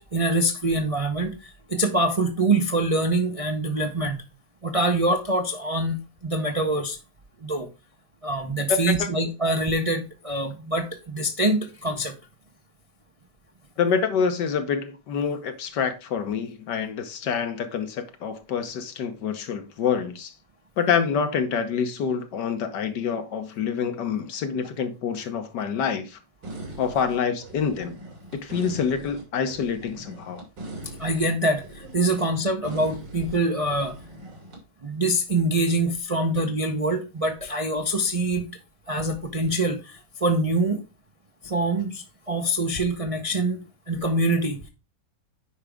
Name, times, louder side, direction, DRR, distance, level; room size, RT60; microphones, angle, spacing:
voice 1, 0.0-4.2 4.6-7.0 7.4-7.7 8.2-12.1 31.0-33.9 34.8-38.5 38.9-40.8 41.4-43.6 43.9-44.7, right 1 dB, 35° right, 0.5 m, -25 dB
voice 2, 13.8-20.3 20.8-26.2 26.8-28.0 28.3-30.4, left 6 dB, 75° left, 1.6 m, -27 dB
sound 1, 26.4-34.6, right 2 dB, 85° right, 3.3 m, -41 dB
9.6 x 5.1 x 3.5 m
omnidirectional pair, 1.9 m